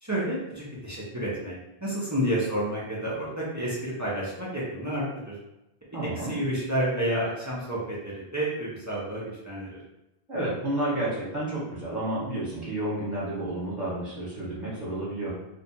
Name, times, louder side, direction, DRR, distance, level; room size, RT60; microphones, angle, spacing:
voice 1, 0.0-1.5 1.8-5.4 6.2-9.8, right 1 dB, 30° right, -6 dB, 0.3 m, -30 dB
voice 2, 5.9-6.4 10.3-15.3, right 1 dB, ahead, -8 dB, 0.8 m, -31 dB
2.5 x 2.2 x 2.7 m, 0.94 s
omnidirectional pair, 1.1 m